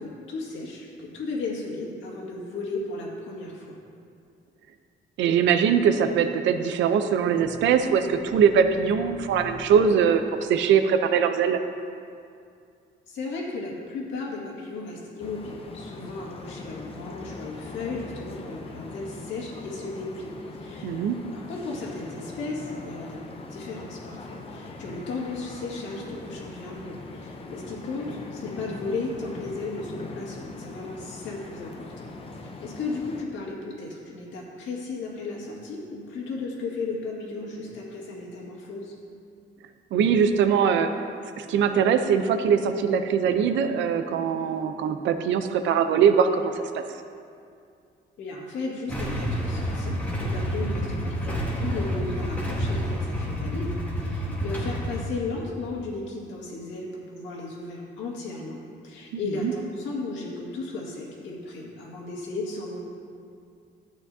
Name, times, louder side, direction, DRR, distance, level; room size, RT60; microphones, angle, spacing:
voice 1, 0.0-3.8 13.1-21.0 21.3-23.2 23.5-32.1 32.4-39.0 48.2-53.7 54.0-58.6 58.8-62.8, left 3 dB, 85° left, -3 dB, 1.9 m, -35 dB
voice 2, 5.2-11.6 20.8-21.2 39.9-40.9 41.4-46.8 59.1-59.5, right 7 dB, 85° right, 8 dB, 0.6 m, -22 dB
sound 1, 7.3-11.9, left 3 dB, 55° left, 1.0 m, -43 dB
sound 2, 15.2-33.2, left 3 dB, 30° left, 0.7 m, -41 dB
Motorcycle / Engine starting / Idling, 48.9-55.0, equal, 10° left, 1.2 m, -29 dB
12.0 x 8.4 x 2.7 m, 2.4 s
cardioid pair, 155°, 19 cm